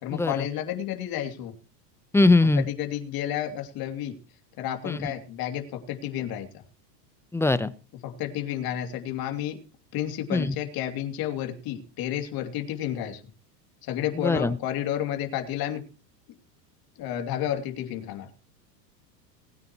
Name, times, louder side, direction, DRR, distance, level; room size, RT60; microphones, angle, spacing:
voice 1, 0.0-1.6 2.6-4.1 4.6-6.6 8.0-9.6 9.9-13.2 13.8-15.8 17.0-18.3, left 11 dB, 45° left, 5 dB, 2.8 m, -31 dB
voice 2, 2.1-2.6 4.8-5.1 7.3-7.7 10.3-10.5 14.2-14.6, left 2 dB, 5° left, 15 dB, 0.7 m, -21 dB
20.5 x 9.4 x 3.0 m, 0.35 s
supercardioid pair, 120°, 50 cm